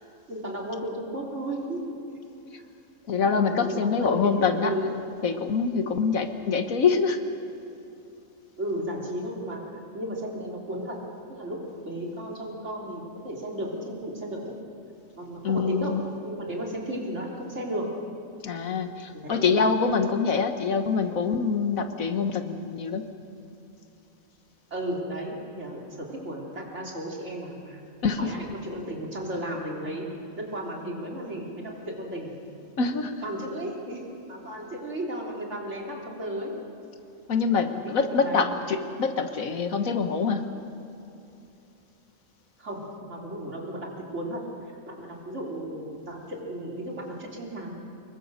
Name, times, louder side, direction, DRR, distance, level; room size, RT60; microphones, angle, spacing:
voice 1, 0.3-1.8 3.2-4.9 8.6-11.0 11.3-14.5 15.2-17.9 19.1-19.4 24.7-27.8 28.2-30.1 30.4-32.3 33.2-36.6 37.6-38.4 42.6-44.4 44.7-47.7, right 1 dB, 60° right, -1 dB, 3.7 m, -34 dB
voice 2, 3.1-4.7 5.2-7.2 15.4-16.0 18.4-23.1 28.0-28.3 32.8-33.2 37.3-40.5, left 5 dB, 85° left, 7 dB, 1.7 m, -25 dB
25.5 x 21.5 x 6.6 m, 2.7 s
omnidirectional pair, 1.4 m